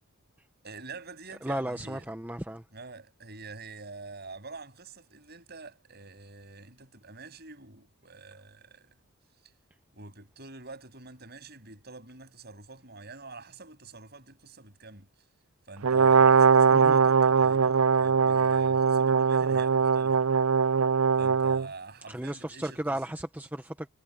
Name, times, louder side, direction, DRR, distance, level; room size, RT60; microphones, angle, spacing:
voice 1, 0.6-2.1 2.7-9.0 9.9-15.1 15.7-20.2 21.2-23.0, right 3 dB, 45° right, 7.9 m, -46 dB
voice 2, 1.4-2.6 16.7-17.0 22.1-23.9, right 1 dB, 10° right, 0.8 m, -34 dB
Brass instrument, 15.8-21.7, right 6 dB, 65° right, 0.5 m, -21 dB
head